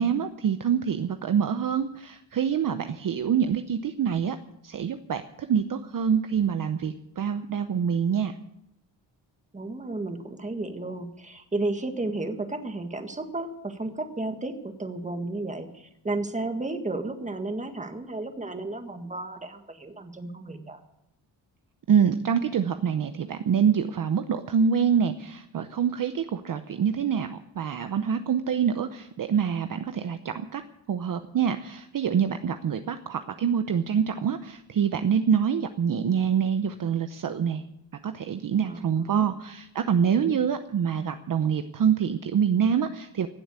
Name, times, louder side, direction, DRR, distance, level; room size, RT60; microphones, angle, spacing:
voice 1, 0.0-4.4 4.6-8.3 21.9-30.6 30.9-37.6 38.0-43.3, right 7 dB, 45° right, 8 dB, 0.8 m, -26 dB
voice 2, 9.5-20.8 38.6-39.3 40.0-40.4, right 2 dB, 15° right, 7 dB, 1.7 m, -33 dB
16.5 x 7.8 x 9.6 m, 0.82 s
cardioid pair, 125°, 46 cm